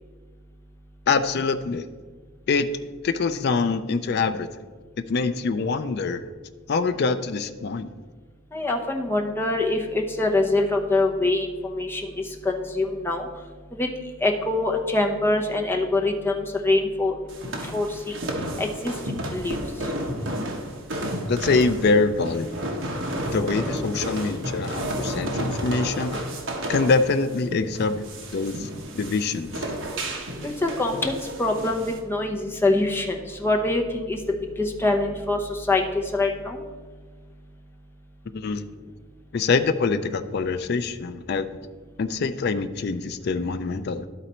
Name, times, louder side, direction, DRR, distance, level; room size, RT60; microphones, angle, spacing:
voice 1, 1.1-1.9 2.5-2.7 3.0-4.5 5.0-6.2 6.7-7.9 21.3-22.5 23.3-26.2 26.7-28.0 28.3-28.7 28.9-29.6 38.3-38.7 39.3-41.5 42.0-44.1, left 4 dB, 50° left, 10 dB, 0.4 m, -24 dB
voice 2, 8.5-13.3 13.7-13.9 14.2-17.1 17.6-18.2 18.6-19.6 30.4-34.2 34.6-36.6, left 2 dB, 10° left, 1 dB, 0.7 m, -24 dB
sound 1, 17.3-32.0, right 1 dB, 60° right, 1.1 m, -31 dB
12.0 x 4.0 x 4.3 m, 1.4 s
head